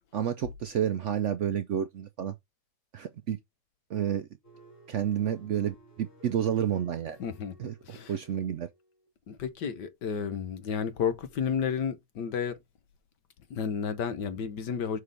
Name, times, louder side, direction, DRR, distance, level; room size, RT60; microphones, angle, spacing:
voice 1, 0.1-2.3 2.9-3.4 3.9-4.3 4.9-7.2 7.6-7.7 8.1-8.7, right 9 dB, 70° right, 0.7 m, -30 dB
sound 1, 4.4-9.1, equal, 45° left, 3.0 m, -55 dB
voice 2, 7.2-8.1 9.3-12.6 13.5-15.0, left 7 dB, 85° left, 1.8 m, -32 dB
6.5 x 4.5 x 3.4 m
omnidirectional pair, 1.8 m